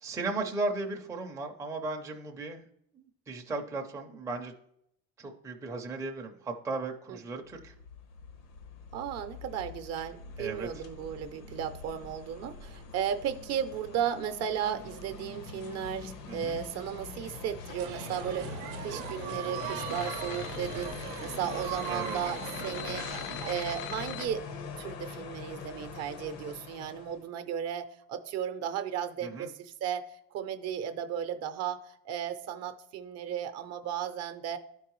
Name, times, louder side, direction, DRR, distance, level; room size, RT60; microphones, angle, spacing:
voice 1, 0.0-2.6 2.9-4.5 5.2-7.7 10.4-10.8 16.3-16.6 21.9-22.2 29.2-29.5, right 3 dB, 10° right, 1 dB, 0.5 m, -36 dB
sound 1, 7.4-27.2, left 5 dB, 85° left, 1.1 m, -43 dB
voice 2, 8.9-24.5 24.8-34.6, right 9 dB, 50° right, 9 dB, 0.6 m, -35 dB
sound 2, 17.7-24.3, left 13 dB, 70° left, 0.5 m, -43 dB
sound 3, 17.8-23.5, right 12 dB, 85° right, 0.7 m, -40 dB
11.5 x 4.6 x 3.0 m, 0.74 s
cardioid pair, 155°, 33 cm